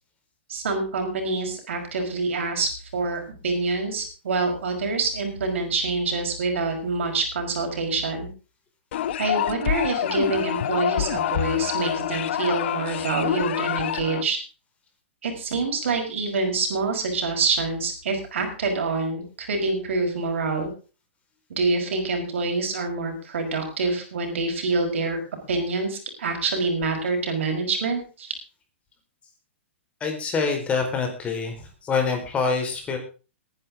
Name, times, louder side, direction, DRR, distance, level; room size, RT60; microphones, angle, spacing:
voice 1, 0.5-8.3 9.2-14.4 15.2-20.7 21.5-25.2 25.5-28.4, right 3 dB, 80° right, 4 dB, 5.5 m, -26 dB
sound 1, 8.9-14.2, left 11 dB, 65° left, 0.9 m, -27 dB
voice 2, 30.0-33.0, left 5 dB, 20° left, 3 dB, 4.4 m, -26 dB
21.0 x 10.5 x 3.7 m, 0.35 s
hypercardioid pair, 140°, 7 cm